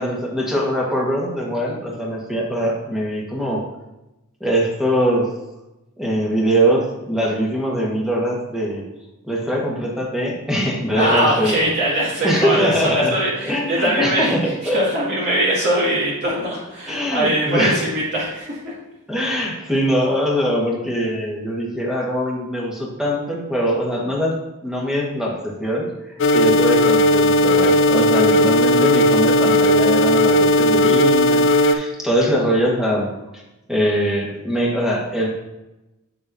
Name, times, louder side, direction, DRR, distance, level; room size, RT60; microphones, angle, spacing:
voice 1, 0.0-3.7 4.4-5.3 6.0-8.8 9.2-11.7 12.2-13.1 13.4-14.8 16.9-17.9 19.1-24.3 24.6-25.9 26.3-33.4 33.7-35.3, equal, ahead, -3 dB, 1.4 m, -22 dB
voice 2, 10.9-14.3 14.7-18.7, right 1 dB, 50° right, -8 dB, 2.3 m, -21 dB
sound 1, 26.2-31.7, equal, 60° left, 0.5 m, -15 dB
7.6 x 6.8 x 2.7 m, 0.99 s
head